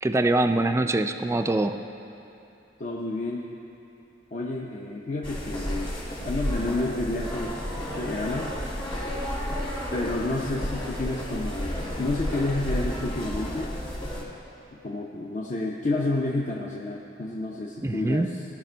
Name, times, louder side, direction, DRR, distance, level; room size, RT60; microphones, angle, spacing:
voice 1, 0.0-1.8 17.8-18.3, right 2 dB, 15° right, 7 dB, 0.3 m, -24 dB
voice 2, 2.8-3.5 4.3-5.9 6.2-8.5 9.9-13.8 14.8-18.4, left 2 dB, 45° left, -2 dB, 0.6 m, -30 dB
sound 1, 5.2-14.2, equal, 30° left, 1.9 m, -32 dB
17.0 x 6.0 x 4.5 m, 2.9 s
head